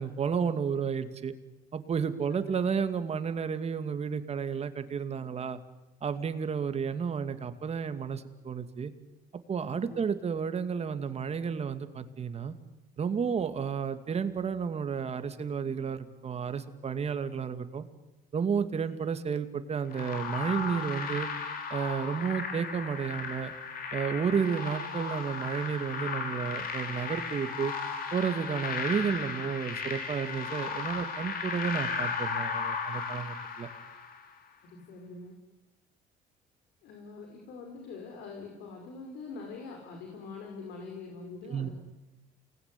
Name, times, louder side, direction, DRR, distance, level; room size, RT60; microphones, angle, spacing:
voice 1, 0.0-1.3 1.7-5.6 6.0-8.9 9.5-12.6 13.0-17.9 18.3-21.3 21.7-23.5 23.9-27.7 28.1-33.7 41.5-41.7, right 6 dB, 40° right, 10 dB, 2.4 m, -32 dB
sound 1, 19.9-34.3, left 5 dB, 60° left, 4.7 m, -35 dB
voice 2, 34.6-35.4 36.8-41.7, left 4 dB, 80° left, 2 dB, 5.3 m, -44 dB
28.5 x 20.0 x 9.9 m, 0.99 s
cardioid pair, 110°, 17 cm